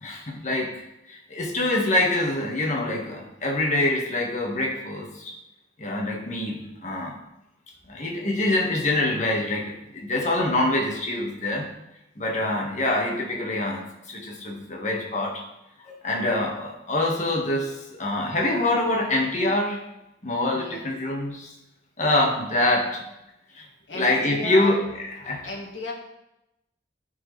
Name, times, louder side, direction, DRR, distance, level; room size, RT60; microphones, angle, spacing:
voice 1, 0.0-5.3 5.8-7.1 7.9-11.7 12.2-15.4 15.9-19.8 20.2-21.5 22.0-23.1 23.6-23.7 23.9-24.8 25.2-25.5, left 1 dB, 40° left, -1 dB, 1.6 m, -25 dB
voice 2, 20.5-20.9 23.9-24.8 25.4-25.9, left 1 dB, 90° left, -2 dB, 1.8 m, -35 dB
13.0 x 4.7 x 3.3 m, 0.89 s
head